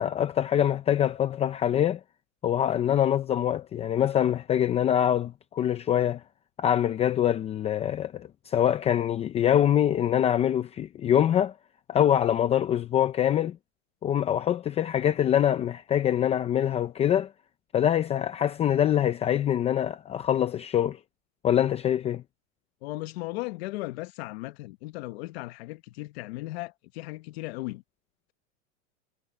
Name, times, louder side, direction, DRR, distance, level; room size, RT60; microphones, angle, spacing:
voice 1, 0.0-2.0 2.4-6.2 6.6-11.5 11.9-13.6 14.0-17.3 17.7-21.0 21.4-22.2, left 10 dB, 15° left, 0.6 m, -24 dB
voice 2, 22.8-27.8, left 20 dB, 50° left, 1.3 m, -36 dB
supercardioid pair, 150°, 39 cm